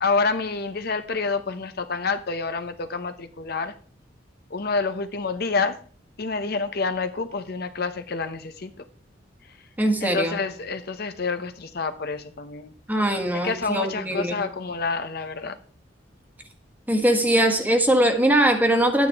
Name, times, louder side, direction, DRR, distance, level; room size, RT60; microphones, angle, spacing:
voice 1, 0.0-3.7 4.5-5.8 6.2-8.7 9.4-9.6 10.0-12.7 13.4-15.6, left 4 dB, 55° left, 8 dB, 0.9 m, -28 dB
voice 2, 9.8-10.4 12.9-14.4 16.9-19.1, right 1 dB, 10° right, 5 dB, 1.4 m, -21 dB
10.5 x 9.4 x 3.5 m, 0.43 s
head